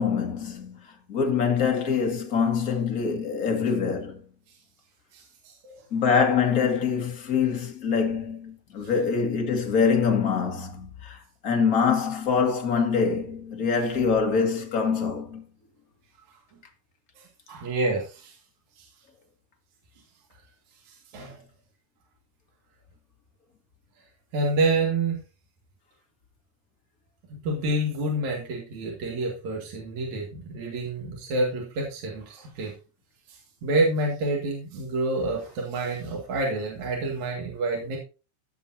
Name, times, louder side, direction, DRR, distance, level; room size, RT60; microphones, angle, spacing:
voice 1, 0.0-4.2 5.9-15.4, left 6 dB, 35° left, 1.6 m, -24 dB
voice 2, 5.1-5.7 17.2-18.4 18.8-18.9 20.9-21.4 24.3-25.2 27.4-32.7 33.3-38.0, right 2 dB, 65° right, 3.3 m, -28 dB
15.5 x 6.8 x 2.7 m
omnidirectional pair, 3.6 m